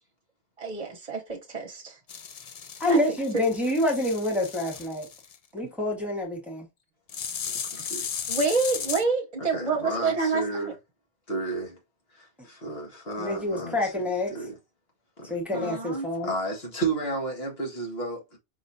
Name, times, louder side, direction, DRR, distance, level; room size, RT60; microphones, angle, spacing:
voice 1, 0.6-2.0 2.9-3.2 7.7-7.9 8.3-10.7 15.5-16.1, right 4 dB, 35° right, 1.0 m, -28 dB
sound 1, 2.1-5.4 7.1-9.0, left 7 dB, 50° left, 0.5 m, -35 dB
voice 2, 2.8-5.1 5.5-6.7 13.2-14.3 15.3-16.3, left 1 dB, ahead, 1.3 m, -27 dB
voice 3, 9.4-10.7 11.3-11.8 12.1-14.1 14.3-14.6 15.2-15.8 16.2-18.4, right 2 dB, 65° left, 1.9 m, -32 dB
5.3 x 3.1 x 2.7 m
omnidirectional pair, 1.1 m